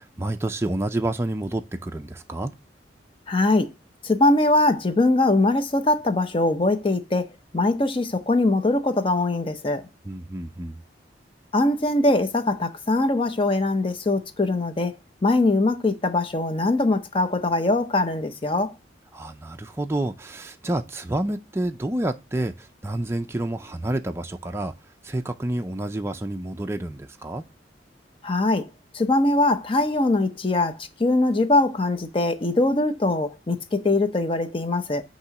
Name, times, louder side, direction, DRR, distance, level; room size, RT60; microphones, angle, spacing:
voice 1, 0.0-2.5 10.0-10.8 19.1-24.7 25.0-27.4, right 1 dB, 15° right, 0.4 m, -29 dB
voice 2, 3.3-3.7 4.0-7.3 7.5-9.8 11.5-14.9 15.2-18.7 28.2-28.7 28.9-35.0, left 2 dB, 30° left, 0.7 m, -22 dB
8.3 x 3.0 x 5.8 m
head